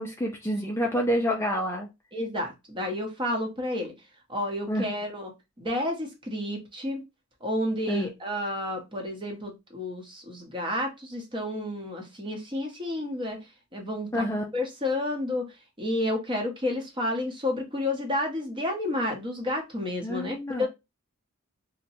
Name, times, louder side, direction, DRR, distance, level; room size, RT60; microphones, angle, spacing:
voice 1, 0.0-1.9 4.7-4.9 7.9-8.1 14.1-14.4 20.0-20.7, equal, 10° left, 0 dB, 0.4 m, -28 dB
voice 2, 2.1-3.9 4.3-5.3 5.6-7.0 7.4-13.4 13.7-14.2 14.5-15.5 15.8-20.7, left 1 dB, 20° right, 2 dB, 0.9 m, -30 dB
2.7 x 2.2 x 4.1 m, 0.23 s
head